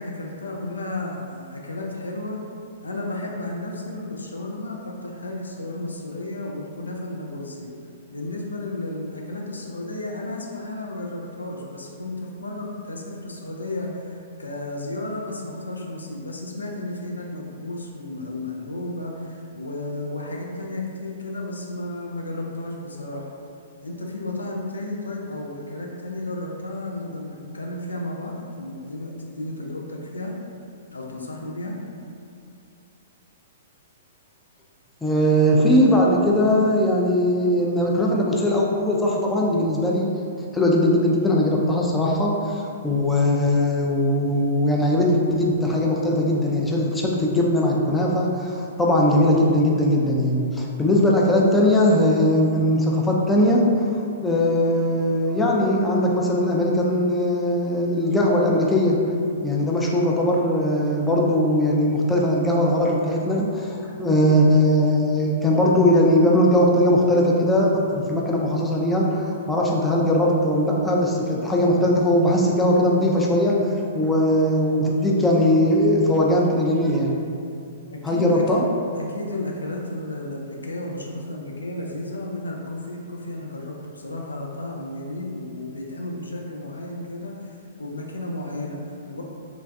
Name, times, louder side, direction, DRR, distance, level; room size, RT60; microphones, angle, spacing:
voice 1, 0.0-2.4 2.8-7.7 8.1-23.3 23.8-30.3 30.9-31.8 77.9-78.4 79.0-89.2, left 2 dB, 85° left, -1 dB, 0.4 m, -33 dB
voice 2, 35.0-40.1 40.5-53.7 54.2-59.0 59.4-73.6 73.9-77.3 78.0-78.6, left 1 dB, 10° left, -3 dB, 0.4 m, -20 dB
3.2 x 2.2 x 2.4 m, 2.4 s
figure-of-eight pair, 115°, 0 cm